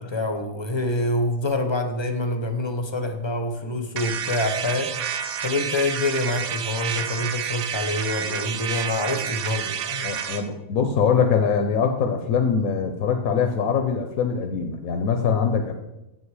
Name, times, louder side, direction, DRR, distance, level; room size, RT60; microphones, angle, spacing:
voice 1, 0.0-4.9 5.4-10.1, left 2 dB, 25° left, 5 dB, 0.7 m, -26 dB
sound 1, 4.0-10.5, right 8 dB, 85° right, 1.1 m, -29 dB
voice 2, 10.0-15.7, left 6 dB, 85° left, 5 dB, 1.2 m, -23 dB
8.0 x 7.8 x 4.8 m, 0.93 s
omnidirectional pair, 1.5 m